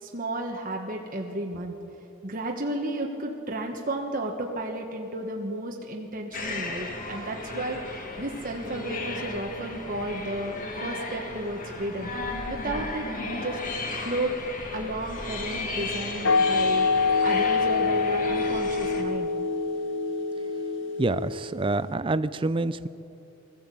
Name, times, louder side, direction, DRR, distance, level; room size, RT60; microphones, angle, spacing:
voice 1, 0.0-1.8 2.2-12.1 12.5-13.6 14.0-14.3 14.7-19.3, right 1 dB, 40° right, 1 dB, 1.3 m, -33 dB
sound 1, 6.3-19.0, left 2 dB, 35° left, 1.7 m, -35 dB
sound 2, 16.2-21.7, left 4 dB, 55° left, 0.8 m, -25 dB
voice 2, 21.0-22.9, right 2 dB, 25° right, 14 dB, 0.4 m, -27 dB
20.5 x 15.0 x 8.4 m, 3.0 s
head